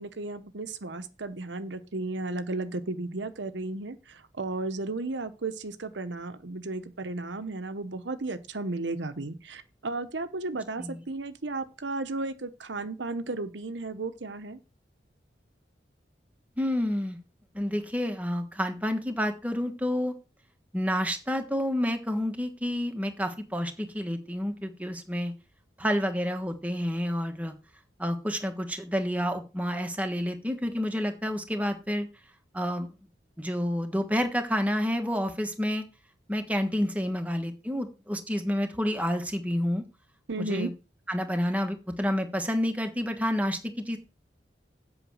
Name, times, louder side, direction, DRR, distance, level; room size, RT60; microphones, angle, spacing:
voice 1, 0.0-14.6 40.3-40.7, right 2 dB, 85° right, 1.0 m, -34 dB
voice 2, 16.6-17.2 17.5-20.1 20.7-25.3 25.8-27.5 28.0-32.1 32.5-32.9 33.4-35.9 36.3-39.8 40.4-40.7 41.1-44.0, equal, 10° right, 1.3 m, -29 dB
8.0 x 5.9 x 7.8 m
head